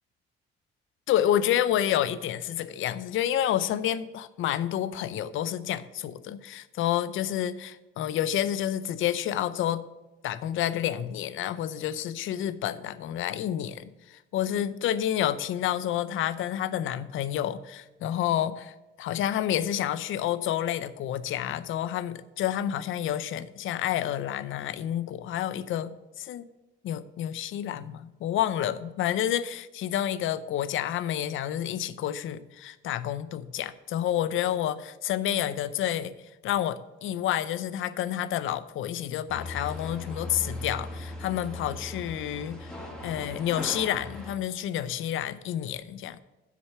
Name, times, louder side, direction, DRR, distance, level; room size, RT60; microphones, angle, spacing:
voice 1, 1.1-9.8 10.2-26.5 26.8-36.1 36.4-42.7 43.0-46.2, left 11 dB, 80° left, 15 dB, 0.6 m, -29 dB
sound 1, 39.3-44.4, left 2 dB, 5° left, 2.2 m, -39 dB
7.7 x 6.7 x 7.6 m, 1.1 s
cardioid pair, 90°, 20 cm